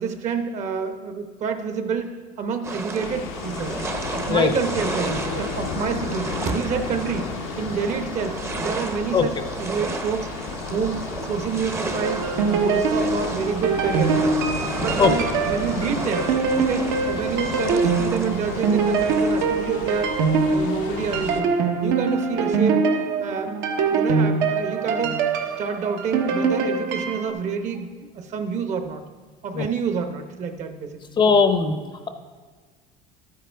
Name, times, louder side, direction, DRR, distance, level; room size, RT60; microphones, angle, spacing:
voice 1, 0.0-3.7 4.1-7.3 7.6-10.3 10.7-12.2 12.5-14.4 14.8-16.3 16.6-20.2 20.4-21.5 21.8-22.8 23.2-23.6 23.9-25.2 25.6-29.0 29.4-31.2 31.7-31.9, right 6 dB, 45° right, 7 dB, 0.9 m, -28 dB
sound 1, 2.6-19.5, right 3 dB, 15° right, 0.7 m, -33 dB
sound 2, 3.0-21.4, left 6 dB, 90° left, 1.0 m, -34 dB
sound 3, 12.0-27.3, right 4 dB, 75° right, 1.1 m, -23 dB
voice 2, 31.2-31.7, left 5 dB, 25° left, 7 dB, 0.6 m, -18 dB
12.5 x 9.4 x 3.5 m, 1.5 s
cardioid pair, 140°, 17 cm